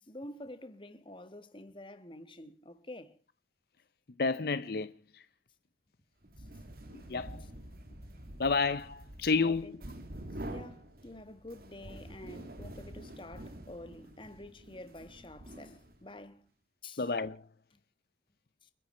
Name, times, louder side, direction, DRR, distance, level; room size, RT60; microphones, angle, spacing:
voice 1, 0.0-3.2 9.3-9.7 10.4-16.5 16.8-17.1 18.6-18.7, left 1 dB, 30° left, 1.5 m, -48 dB
voice 2, 4.2-5.2 7.1-7.4 8.4-9.8 17.0-17.4, left 4 dB, 60° left, 0.7 m, -30 dB
sound 1, 6.2-16.2, right 1 dB, 55° right, 2.2 m, -47 dB
30.0 x 11.0 x 4.4 m
head